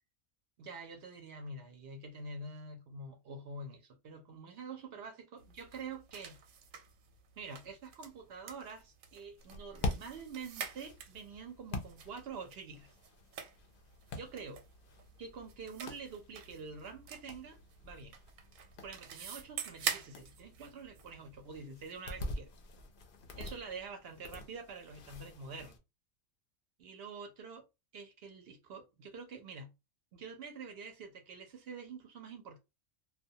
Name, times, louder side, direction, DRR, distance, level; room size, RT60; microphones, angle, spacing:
voice 1, 0.6-6.4 7.4-12.9 14.1-14.6 15.2-17.6 17.8-18.1 18.8-22.5 23.4-25.8 26.8-27.7 27.9-29.7 30.1-32.6, right 4 dB, 65° right, 0.7 m, -46 dB
sound 1, 5.4-21.5, right 8 dB, 90° right, 1.0 m, -46 dB
sound 2, 9.4-25.8, left 2 dB, 60° left, 0.6 m, -46 dB
2.2 x 2.2 x 2.6 m
omnidirectional pair, 1.3 m